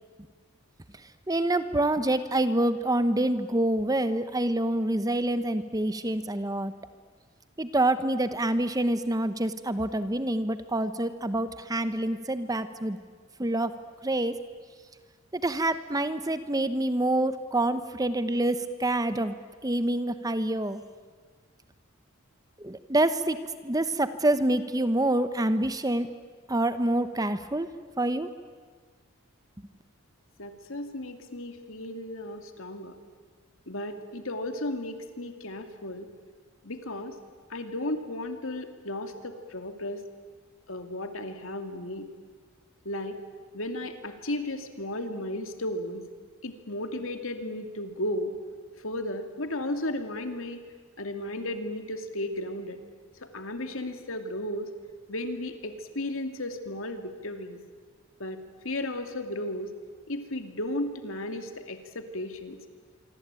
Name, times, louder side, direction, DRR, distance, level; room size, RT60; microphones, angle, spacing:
voice 1, 1.3-6.7 7.6-13.0 13.4-13.7 14.0-14.4 15.3-19.3 19.6-20.8 22.6-23.4 23.6-26.1 26.5-27.7 28.0-28.3, right 1 dB, 15° right, 11 dB, 1.0 m, -26 dB
voice 2, 30.4-33.0 33.7-36.1 36.6-37.2 37.5-40.0 40.7-42.1 42.8-43.2 43.5-46.0 46.4-48.3 48.8-50.6 51.0-52.8 53.2-54.7 55.1-57.6 58.2-59.7 60.1-62.6, left 1 dB, 70° left, 6 dB, 2.6 m, -34 dB
26.0 x 24.5 x 9.0 m, 1.5 s
head